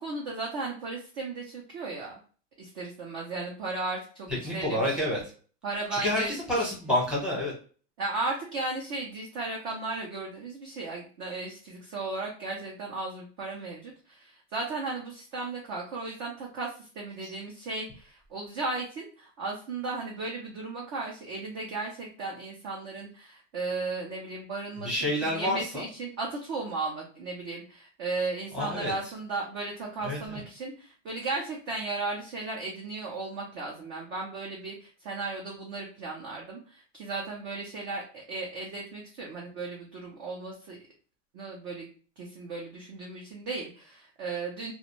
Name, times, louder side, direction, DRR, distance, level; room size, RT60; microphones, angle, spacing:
voice 1, 0.0-2.2 2.6-4.8 5.6-6.3 6.6-6.7 8.0-24.9 25.2-40.8 41.3-41.9 42.2-44.7, right 3 dB, 30° right, -2 dB, 0.4 m, -35 dB
voice 2, 4.4-5.2 5.9-7.5 17.2-17.3 24.8-25.9 28.5-28.9 30.0-30.4, left 1 dB, ahead, -4 dB, 0.8 m, -29 dB
2.5 x 2.1 x 2.9 m, 0.40 s
supercardioid pair, 160°, 37 cm